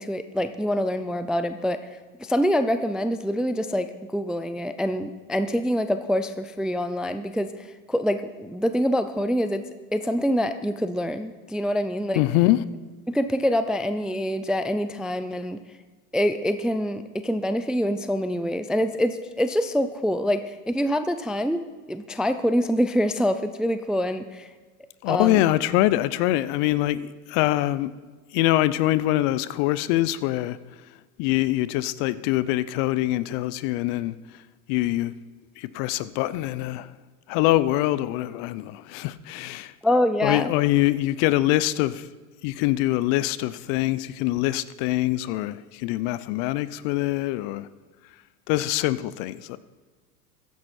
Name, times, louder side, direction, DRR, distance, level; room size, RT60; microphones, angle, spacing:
voice 1, 0.0-1.8 2.2-3.9 4.1-9.6 9.9-12.2 13.1-15.6 16.1-24.5 25.1-25.4 39.8-40.5, equal, ahead, 0.3 m, -25 dB
voice 2, 12.2-12.6 25.0-27.9 28.3-30.6 31.2-34.1 34.7-35.1 35.6-36.9 37.3-39.7 40.2-42.1 42.4-47.7 48.5-49.6, left 16 dB, 55° left, 0.7 m, -24 dB
14.5 x 10.5 x 4.3 m
hypercardioid pair, 95°, 44 cm